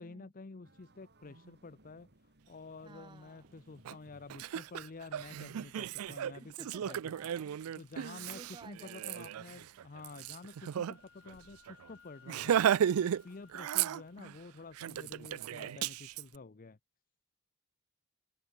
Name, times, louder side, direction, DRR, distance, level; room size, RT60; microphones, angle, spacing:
voice 1, 0.0-6.5 6.8-7.1 7.8-12.6 13.0-16.8, left 3 dB, 40° left, 0.7 m, -50 dB
sound 1, 0.6-5.9, right 1 dB, 50° right, 3.8 m, -65 dB
voice 2, 2.8-3.6 6.4-7.6 8.3-9.3, right 4 dB, 20° right, 0.4 m, -54 dB
Laughter, 3.8-3.9 4.3-10.9 11.3-11.4 11.7-11.9 12.3-13.2 13.5-14.3 14.8-16.2, right 9 dB, 90° right, 0.4 m, -34 dB
Wind instrument woodwind instrument, 10.0-14.1, left 7 dB, 65° left, 2.8 m, -63 dB
head